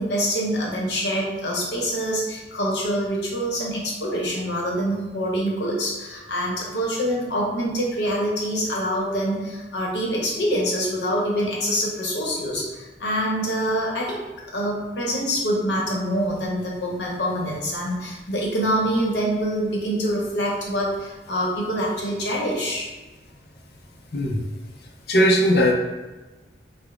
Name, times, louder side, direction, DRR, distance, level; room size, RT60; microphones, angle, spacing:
voice 1, 0.0-14.2 14.5-22.9, equal, 85° left, -4 dB, 0.9 m, -25 dB
voice 2, 25.1-25.7, equal, 60° left, 1 dB, 0.5 m, -18 dB
5.0 x 2.0 x 2.3 m, 1.2 s
head